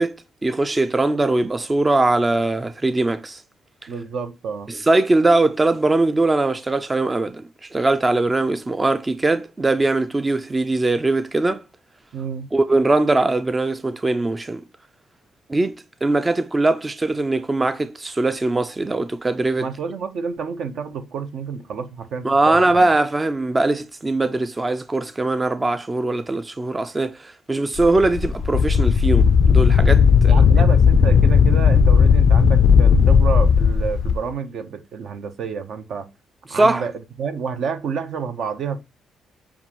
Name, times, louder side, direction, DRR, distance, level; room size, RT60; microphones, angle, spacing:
voice 1, 0.0-3.4 4.7-11.6 12.5-14.6 15.5-19.7 22.2-30.4 36.5-36.8, right 2 dB, 20° right, 0.4 m, -21 dB
voice 2, 3.9-4.7 12.1-12.5 19.6-22.9 30.3-36.1 36.5-38.8, right 6 dB, 70° right, 0.7 m, -29 dB
Wind, 27.8-34.2, left 6 dB, 60° left, 0.3 m, -15 dB
7.0 x 2.5 x 2.9 m
cardioid pair, 90°, 0 cm